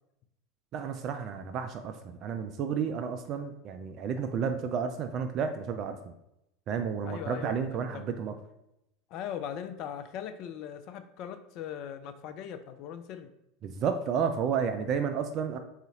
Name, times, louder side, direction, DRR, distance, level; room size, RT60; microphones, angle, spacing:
voice 1, 0.7-6.1 6.7-8.3 13.6-15.6, right 6 dB, 40° right, 7 dB, 0.3 m, -31 dB
voice 2, 7.0-8.0 9.1-13.3, left 9 dB, 50° left, 9 dB, 0.3 m, -40 dB
3.9 x 2.4 x 3.9 m, 0.84 s
figure-of-eight pair, 75°, 0 cm